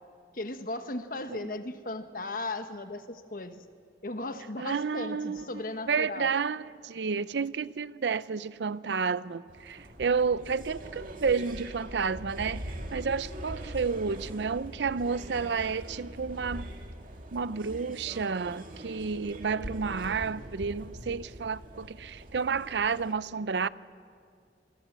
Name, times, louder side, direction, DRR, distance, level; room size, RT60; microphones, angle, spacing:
voice 1, 0.3-3.6 4.0-6.4, left 2 dB, 50° left, 1.3 m, -36 dB
voice 2, 4.6-5.4 5.9-16.7 17.3-23.7, right 5 dB, 80° right, 0.5 m, -31 dB
sound 1, 9.5-23.1, right 1 dB, 50° right, 2.4 m, -42 dB
26.0 x 21.0 x 7.4 m
head